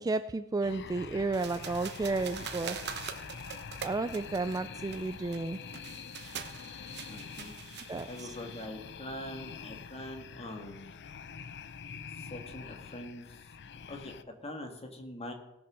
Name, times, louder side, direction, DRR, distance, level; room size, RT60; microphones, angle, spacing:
voice 1, 0.0-2.8 3.8-5.6 7.9-8.4, right 3 dB, 15° right, 11 dB, 0.3 m, -32 dB
sound 1, 0.6-14.2, left 6 dB, 50° left, 0.6 m, -46 dB
sound 2, 1.3-8.7, right 7 dB, 50° right, 1.0 m, -44 dB
voice 2, 7.1-7.8 8.1-10.9 12.2-13.5 13.9-15.3, left 1 dB, 30° left, 4 dB, 1.7 m, -43 dB
17.5 x 6.2 x 6.1 m, 0.95 s
head